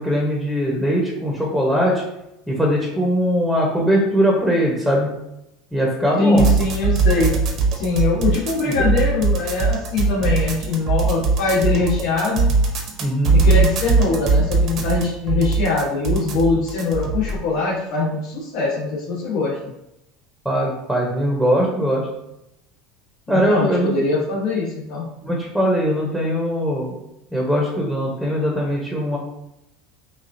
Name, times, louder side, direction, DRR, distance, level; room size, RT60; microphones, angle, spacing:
voice 1, 0.0-2.0 2.5-5.1 5.7-6.5 8.8-8.9 13.0-13.4 20.4-22.1 23.3-23.9 25.2-26.9 27.3-29.2, equal, ahead, -2 dB, 1.0 m, -20 dB
voice 2, 6.2-7.4 7.7-12.5 13.3-19.6 23.3-25.1, left 3 dB, 65° left, -8 dB, 1.5 m, -22 dB
sound 1, 6.4-17.4, right 4 dB, 45° right, 0.8 m, -20 dB
6.1 x 2.4 x 2.7 m, 0.86 s
supercardioid pair, 120°, 0 cm